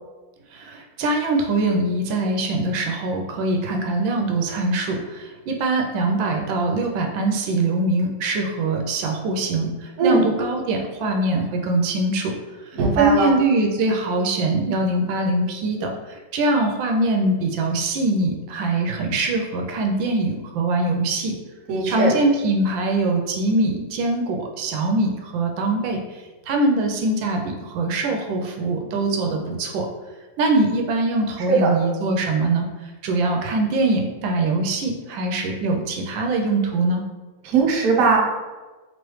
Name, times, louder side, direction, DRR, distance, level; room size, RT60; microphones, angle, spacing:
voice 1, 0.5-12.3 12.7-21.3 21.9-29.9 30.4-37.0, right 2 dB, 85° right, 2 dB, 1.3 m, -23 dB
voice 2, 12.7-13.3 21.7-22.2 31.5-31.7 37.4-38.2, right 4 dB, 65° right, 0 dB, 0.9 m, -19 dB
3.3 x 3.0 x 3.1 m, 1.2 s
omnidirectional pair, 2.0 m